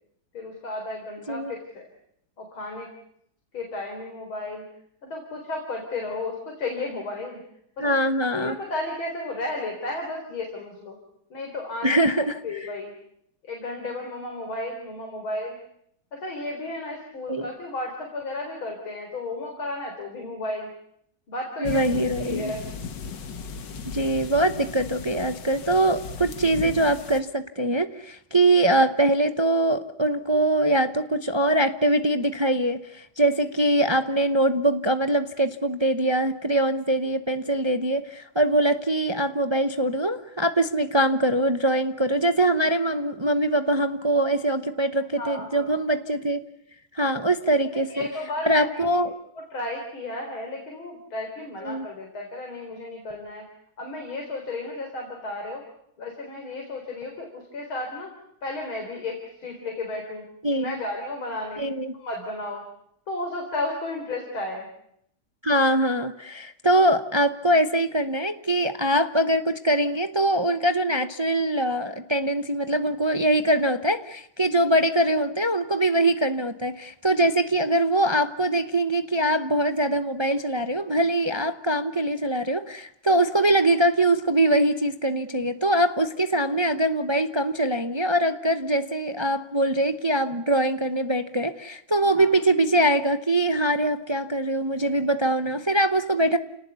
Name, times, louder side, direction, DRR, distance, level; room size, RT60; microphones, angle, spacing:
voice 1, 0.3-1.9 2.4-2.9 3.5-4.6 5.0-7.4 7.8-7.9 8.3-11.0 11.3-12.9 13.4-15.6 16.1-20.7 21.3-22.6 28.5-28.6 45.2-45.7 47.7-48.8 49.3-53.5 53.8-55.6 56.0-58.1 58.4-61.6 62.0-62.6 63.1-64.7 92.1-92.4, left 2 dB, 85° left, 2 dB, 5.0 m, -33 dB
voice 2, 7.8-8.6 11.8-12.4 17.3-17.5 21.6-22.5 23.8-46.4 46.9-48.1 48.4-49.1 51.6-51.9 60.4-60.8 61.6-61.9 65.4-96.4, right 1 dB, 35° right, 9 dB, 0.4 m, -23 dB
sound 1, 21.6-27.2, left 5 dB, 60° left, 2.1 m, -37 dB
29.5 x 19.0 x 8.3 m, 0.74 s
omnidirectional pair, 2.2 m